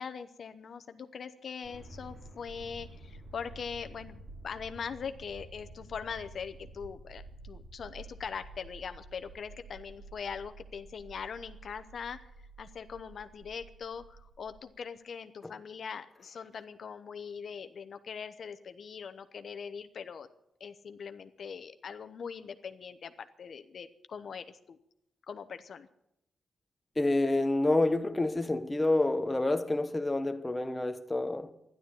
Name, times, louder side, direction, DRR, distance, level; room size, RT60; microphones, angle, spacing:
voice 1, 0.0-12.3 12.6-20.3 20.6-24.8 25.3-25.9, left 6 dB, 60° left, 0.9 m, -42 dB
sound 1, 1.6-14.6, right 2 dB, 50° right, 4.5 m, -50 dB
voice 2, 27.0-31.5, left 2 dB, 15° left, 1.0 m, -28 dB
13.0 x 11.5 x 8.5 m
wide cardioid pair, 115°, 0 cm